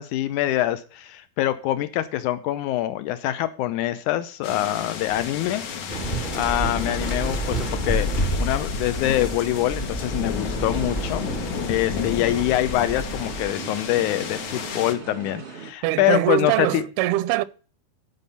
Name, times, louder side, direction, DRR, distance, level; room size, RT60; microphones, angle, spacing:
voice 1, 0.0-5.6 6.3-11.3 11.7-16.8, left 14 dB, 85° left, 1.8 m, -25 dB
sound 1, 4.4-14.9, left 6 dB, 60° left, 2.2 m, -33 dB
Waves surf, 5.9-13.5, equal, 25° left, 1.0 m, -29 dB
sound 2, 7.8-15.7, right 5 dB, 40° right, 0.9 m, -41 dB
voice 2, 15.8-17.4, right 15 dB, 90° right, 2.6 m, -22 dB
13.5 x 5.5 x 5.4 m
omnidirectional pair, 4.4 m